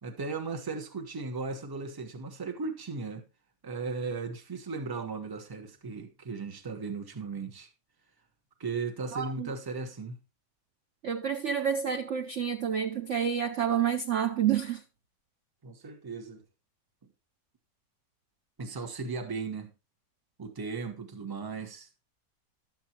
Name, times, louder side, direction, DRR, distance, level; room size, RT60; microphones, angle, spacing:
voice 1, 0.0-3.3 3.6-7.7 8.6-10.2 15.6-16.4 18.6-19.7 20.4-21.9, right 4 dB, 15° right, 0.8 m, -36 dB
voice 2, 9.1-9.5 11.0-14.8, right 8 dB, 60° right, 0.8 m, -29 dB
12.0 x 7.6 x 2.9 m
omnidirectional pair, 1.9 m